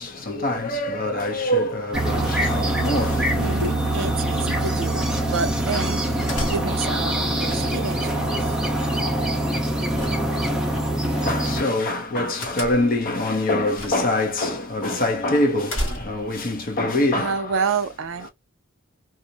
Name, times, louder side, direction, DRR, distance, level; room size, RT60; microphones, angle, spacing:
voice 1, 0.0-3.7 11.2-17.6, left 1 dB, 45° left, 0.7 m, -24 dB
sound 1, 1.9-11.6, right 1 dB, 5° right, 0.6 m, -24 dB
voice 2, 3.3-8.6 17.2-18.3, right 5 dB, 65° right, 0.4 m, -29 dB
sound 2, 3.6-4.2 6.3-7.0 10.0-10.7 12.4-13.0 13.7-14.2 14.5-14.6 15.7-16.4, equal, 65° left, 1.2 m, -32 dB
2.4 x 2.0 x 2.7 m
head